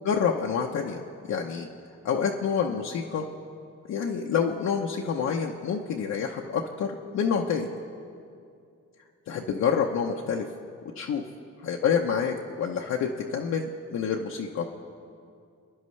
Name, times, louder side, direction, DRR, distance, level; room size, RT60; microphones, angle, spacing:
voice 1, 0.0-1.0 1.3-1.7 2.0-3.3 3.9-7.8 9.3-10.5 11.0-11.2 11.6-14.7, left 6 dB, 60° left, 0 dB, 0.8 m, -27 dB
25.5 x 10.5 x 3.2 m, 2.4 s
cardioid pair, 90°, 30 cm